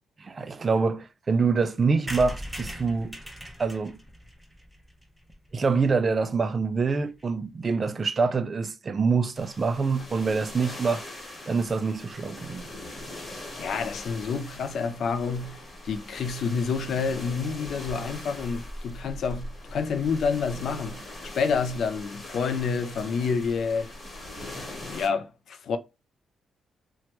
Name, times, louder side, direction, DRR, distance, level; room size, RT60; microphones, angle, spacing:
voice 1, 0.2-3.2 3.6-4.0 5.5-11.1 11.5-12.7, right 4 dB, 40° right, 0.3 m, -25 dB
sound 1, 2.1-5.8 6.2-6.3 6.5-6.6 6.8-6.9 7.1-7.3, equal, 5° right, 0.6 m, -39 dB
sound 2, 9.3-25.1, left 1 dB, 30° left, 1.2 m, -41 dB
voice 2, 13.6-21.0 21.3-23.9 24.8-25.8, left 5 dB, 65° left, 0.3 m, -28 dB
2.9 x 2.2 x 2.9 m
cardioid pair, 90°, 0 cm